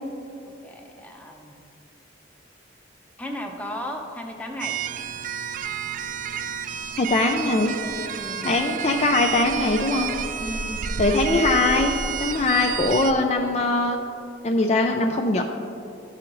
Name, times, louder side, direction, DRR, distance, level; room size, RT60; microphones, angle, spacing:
voice 1, 0.4-1.6 3.2-4.7 8.1-8.5 10.4-10.8, left 1 dB, 10° left, 2 dB, 0.7 m, -35 dB
sound 1, 4.6-13.1, right 7 dB, 45° right, 0.4 m, -30 dB
voice 2, 7.0-7.7 8.4-10.1 11.0-11.9 12.2-14.0 14.4-15.4, left 2 dB, 35° left, 3 dB, 0.4 m, -21 dB
12.5 x 5.7 x 3.9 m, 2.7 s
head